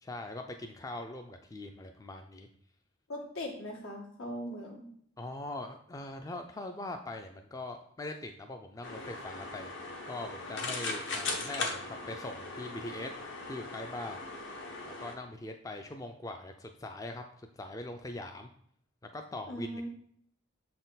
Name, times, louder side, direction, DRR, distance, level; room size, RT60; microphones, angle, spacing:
voice 1, 0.0-2.5 5.2-9.7 10.1-13.1 13.5-14.2 15.0-17.2 17.6-18.5 19.1-19.9, left 2 dB, 15° left, 5 dB, 0.3 m, -42 dB
voice 2, 3.1-4.8 19.5-19.9, equal, 85° left, -2 dB, 1.7 m, -39 dB
sound 1, 8.8-15.2, left 3 dB, 60° left, 0.9 m, -39 dB
7.0 x 4.3 x 3.9 m, 0.64 s
head